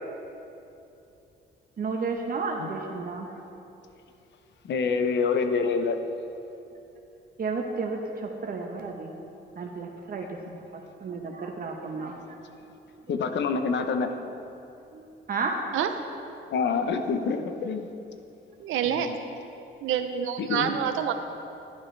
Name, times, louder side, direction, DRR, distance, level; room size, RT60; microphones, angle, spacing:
voice 1, 1.8-3.4 7.4-9.1 9.6-10.6 11.0-12.1 14.9-15.6, right 4 dB, 45° right, 2 dB, 1.0 m, -32 dB
voice 2, 4.6-6.0 13.1-14.1 16.5-17.9 18.8-19.2 20.4-20.7, left 5 dB, 65° left, 7 dB, 0.9 m, -26 dB
voice 3, 18.6-19.1 19.8-21.1, right 9 dB, 85° right, 8 dB, 0.7 m, -27 dB
11.5 x 11.0 x 3.3 m, 2.8 s
cardioid pair, 90°, 20 cm